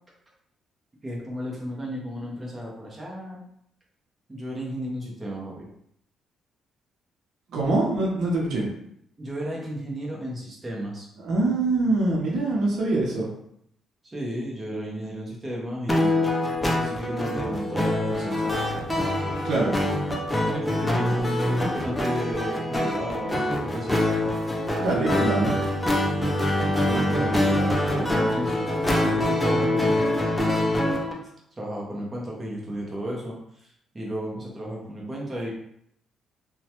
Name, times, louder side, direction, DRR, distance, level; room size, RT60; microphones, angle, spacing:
voice 1, 1.0-3.4 4.3-5.7 9.2-11.1 14.0-16.3 16.6-18.6 20.4-24.0 26.8-30.2 31.6-33.4 33.6-35.5, equal, 20° right, -3 dB, 0.9 m, -33 dB
voice 2, 7.5-8.7 11.2-13.3 19.4-19.8 24.8-25.6, right 2 dB, 70° right, -2 dB, 0.7 m, -24 dB
sound 1, 15.9-31.1, left 1 dB, 10° left, 0.5 m, -24 dB
3.0 x 2.2 x 2.9 m, 0.71 s
cardioid pair, 110°, 0 cm